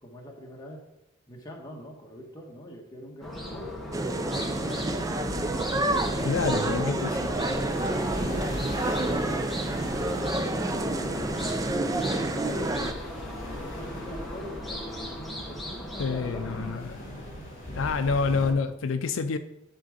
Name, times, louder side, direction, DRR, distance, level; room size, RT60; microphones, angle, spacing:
voice 1, 0.0-0.8 1.3-4.8 6.1-6.8 7.2-7.8 8.2-8.5 8.8-12.8 13.4-14.8 15.1-16.6 18.3-18.6, equal, 20° left, -1 dB, 1.4 m, -43 dB
sound 1, 3.2-16.8, left 1 dB, ahead, 1.1 m, -37 dB
sound 2, 3.9-12.9, right 2 dB, 15° right, 0.4 m, -29 dB
sound 3, 4.3-18.5, equal, 40° left, 3.1 m, -41 dB
voice 2, 6.2-7.2 16.0-17.0 17.8-19.4, left 4 dB, 80° left, 10 dB, 0.5 m, -27 dB
11.0 x 3.9 x 5.0 m, 0.86 s
head